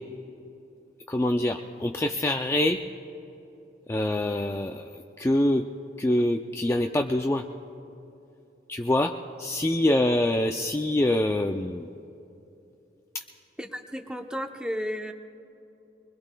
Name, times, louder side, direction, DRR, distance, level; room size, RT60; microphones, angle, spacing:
voice 1, 1.1-2.8 3.9-5.6 6.0-7.4 8.7-9.1 9.4-11.9, left 1 dB, 15° left, 4 dB, 0.4 m, -25 dB
voice 2, 13.6-15.1, equal, 5° right, 5 dB, 0.7 m, -33 dB
23.5 x 21.0 x 2.3 m, 2.8 s
head